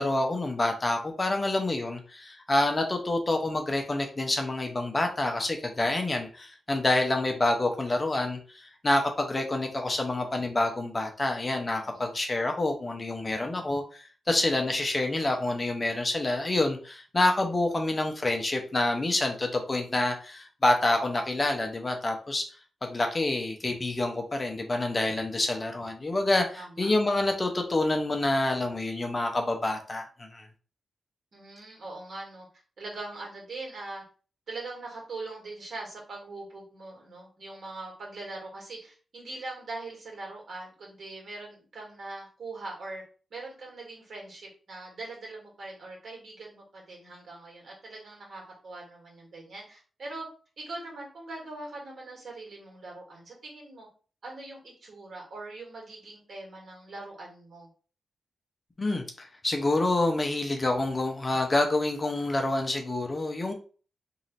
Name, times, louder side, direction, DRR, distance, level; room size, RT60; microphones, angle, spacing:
voice 1, 0.0-22.5 22.8-30.5 58.8-63.5, left 2 dB, 30° left, 4 dB, 0.8 m, -27 dB
voice 2, 11.8-12.1 26.5-26.9 31.3-32.5 32.8-34.0 34.5-43.0 43.3-50.3 50.6-53.9 54.2-57.7, right 2 dB, 65° right, -2 dB, 1.9 m, -42 dB
3.1 x 2.8 x 4.2 m, 0.39 s
cardioid pair, 75°, 0 cm